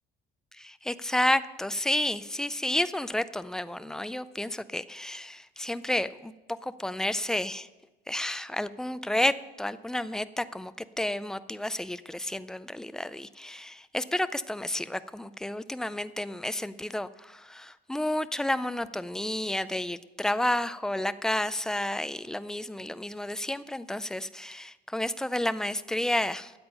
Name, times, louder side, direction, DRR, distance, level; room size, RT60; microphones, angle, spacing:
voice 1, 0.6-6.3 6.6-7.7 8.1-9.3 9.6-26.5, left 1 dB, 5° left, 14 dB, 0.3 m, -31 dB
13.0 x 8.7 x 5.4 m, 1.1 s
cardioid pair, 160°, 17 cm